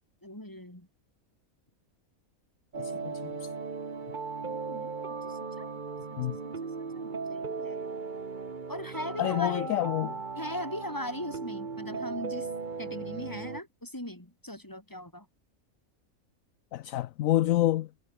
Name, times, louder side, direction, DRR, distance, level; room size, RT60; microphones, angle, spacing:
voice 1, 0.2-0.9 4.4-5.7 6.1-8.0 8.7-9.7 10.4-12.5 12.8-15.3, left 1 dB, 15° left, 4.7 m, -40 dB
sound 1, 2.7-13.6, right 4 dB, 35° right, 1.4 m, -37 dB
voice 2, 2.8-3.5 6.2-6.4 9.2-10.2 16.7-17.9, left 14 dB, 75° left, 1.0 m, -28 dB
omnidirectional pair, 1.5 m